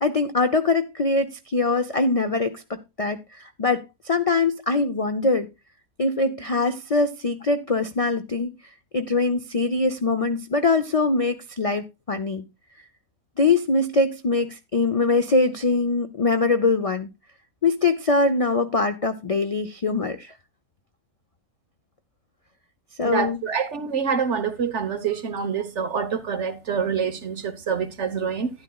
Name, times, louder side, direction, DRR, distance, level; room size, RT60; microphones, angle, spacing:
voice 1, 0.0-5.5 6.0-8.5 8.9-12.5 13.4-17.1 17.6-20.3 23.0-23.4, left 3 dB, 55° left, 0.4 m, -23 dB
voice 2, 23.0-28.5, right 6 dB, 55° right, 1.3 m, -26 dB
12.0 x 10.5 x 2.3 m
omnidirectional pair, 1.5 m